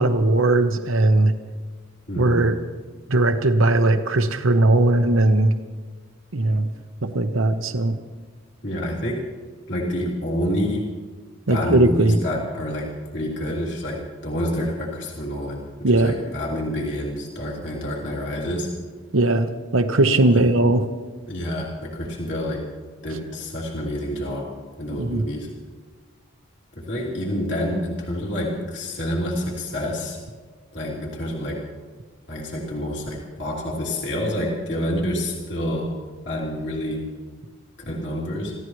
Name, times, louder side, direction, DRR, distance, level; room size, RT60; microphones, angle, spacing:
voice 1, 0.0-1.3 2.2-2.6 3.1-5.5 6.3-6.7 7.1-8.0 11.5-12.2 15.8-16.1 19.1-20.9 25.0-25.2, right 2 dB, 80° right, 7 dB, 1.0 m, -18 dB
voice 2, 2.1-2.5 8.6-9.2 9.7-10.8 11.5-18.7 20.3-20.4 21.3-22.6 23.0-24.5 24.8-25.5 26.7-30.2 30.7-31.6 32.3-35.9 36.2-37.0 37.9-38.5, equal, 60° left, -3 dB, 3.0 m, -28 dB
27.5 x 15.5 x 3.2 m, 1.5 s
head